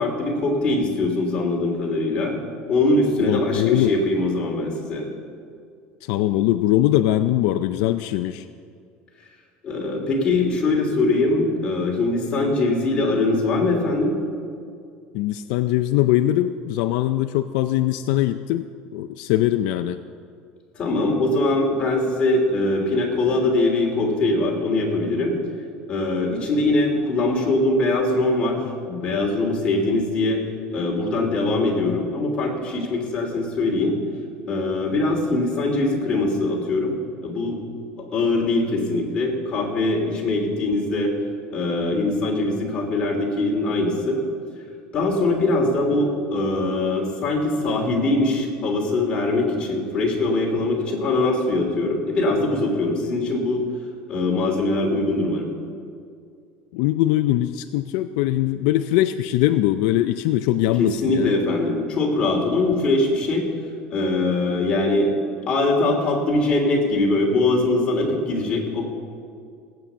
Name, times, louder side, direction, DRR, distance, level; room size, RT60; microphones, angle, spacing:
voice 1, 0.0-2.4 2.7-5.0 9.6-14.2 20.7-25.4 25.9-28.6 28.9-30.4 30.7-34.0 34.5-36.9 37.2-37.6 38.1-41.1 41.5-44.2 44.9-53.6 54.1-55.5 60.8-63.5 63.9-65.1 65.5-68.9, left 2 dB, 30° left, -1 dB, 3.2 m, -22 dB
voice 2, 3.2-3.9 6.0-8.4 15.1-18.7 18.9-20.0 56.7-61.3, left 14 dB, 75° left, 9 dB, 0.5 m, -21 dB
17.0 x 9.0 x 7.0 m, 2.3 s
cardioid pair, 145°, 4 cm